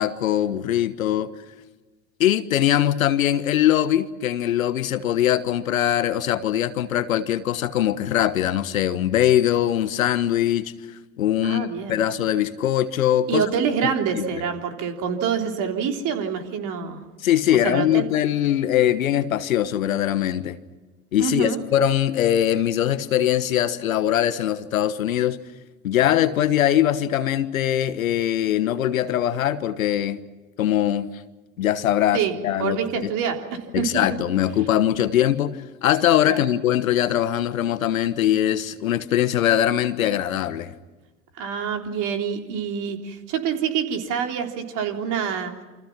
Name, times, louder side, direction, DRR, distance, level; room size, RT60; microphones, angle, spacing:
voice 1, 0.0-1.3 2.2-10.7 11.2-13.4 13.8-14.4 17.2-20.6 21.1-25.4 25.8-30.2 30.6-31.1 31.6-33.1 33.7-40.7, left 11 dB, 70° left, 13 dB, 1.4 m, -22 dB
voice 2, 11.4-12.0 13.3-17.0 17.6-18.1 21.2-21.6 32.1-33.5 33.8-34.0 36.3-36.4 41.4-45.5, right 7 dB, 45° right, 4 dB, 3.5 m, -26 dB
28.5 x 26.0 x 6.0 m, 1.2 s
figure-of-eight pair, 80°, 42 cm